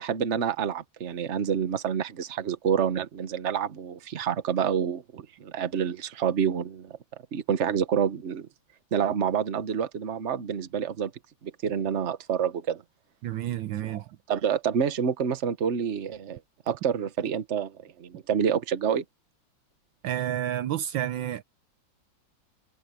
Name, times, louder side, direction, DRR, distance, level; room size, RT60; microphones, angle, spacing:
voice 1, 0.0-7.0 7.3-8.5 8.9-11.1 11.4-12.8 13.8-16.4 16.7-19.0, right 8 dB, 40° right, 1.3 m, -28 dB
voice 2, 13.2-14.0 20.0-21.4, right 11 dB, 75° right, 1.4 m, -30 dB
omnidirectional pair, 2.2 m